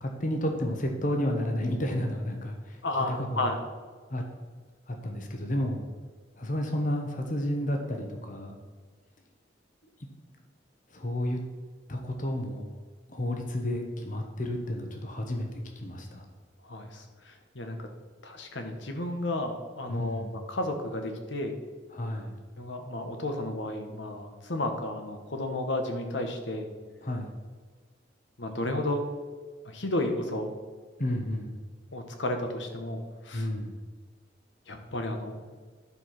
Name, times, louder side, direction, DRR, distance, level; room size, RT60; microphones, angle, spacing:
voice 1, 0.0-2.8 3.1-3.5 4.1-4.2 4.9-5.8 6.4-8.5 10.9-11.4 11.9-12.6 13.1-16.2 19.9-20.4 21.9-22.4 27.0-27.3 31.0-31.5 33.3-33.7, left 1 dB, 45° left, 3 dB, 1.1 m, -31 dB
voice 2, 2.8-3.6 16.6-17.9 18.2-21.5 22.6-26.7 28.4-29.0 29.6-30.5 31.9-33.5 34.7-35.4, left 1 dB, 75° left, 5 dB, 1.3 m, -32 dB
11.5 x 4.9 x 5.9 m, 1.4 s
head